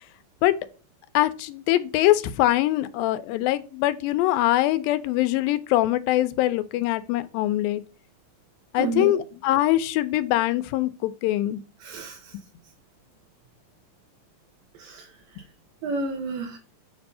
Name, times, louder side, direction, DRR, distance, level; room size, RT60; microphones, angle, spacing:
voice 1, 1.1-7.8 8.7-11.6, left 15 dB, 90° left, 2.3 m, -23 dB
voice 2, 8.8-9.2 11.8-12.3 14.8-15.1 15.8-16.6, right 3 dB, 80° right, 2.6 m, -30 dB
6.9 x 2.6 x 5.4 m
omnidirectional pair, 4.1 m